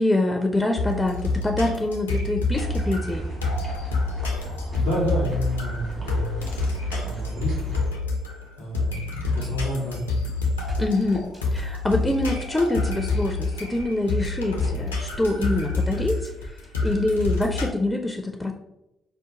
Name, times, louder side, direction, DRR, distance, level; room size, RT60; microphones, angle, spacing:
voice 1, 0.0-3.3 10.8-16.3 16.8-18.5, left 2 dB, 15° left, 3 dB, 0.4 m, -25 dB
sound 1, 0.8-17.7, left 3 dB, 85° left, 0.4 m, -28 dB
sound 2, 2.5-7.9, right 2 dB, 45° right, 1.5 m, -33 dB
voice 2, 4.8-6.4 6.7-7.9 8.6-10.0, equal, 80° right, -7 dB, 1.2 m, -30 dB
sound 3, 10.5-17.3, right 2 dB, 30° right, 0.9 m, -40 dB
4.8 x 2.2 x 2.8 m, 0.89 s
figure-of-eight pair, 40°, 0 cm